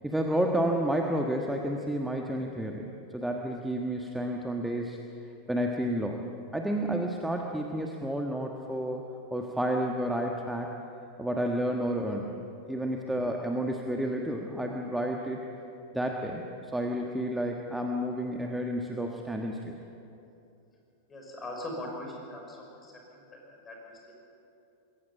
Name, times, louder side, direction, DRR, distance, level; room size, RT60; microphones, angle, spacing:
voice 1, 0.0-2.9 3.1-5.0 5.5-6.2 6.5-9.0 9.3-10.7 11.2-12.3 12.7-15.4 15.9-19.8, right 1 dB, 5° right, 1 dB, 1.4 m, -30 dB
voice 2, 21.1-24.1, left 1 dB, 20° left, 0 dB, 6.0 m, -41 dB
21.5 x 17.5 x 7.4 m, 2.7 s
figure-of-eight pair, 90°, 0 cm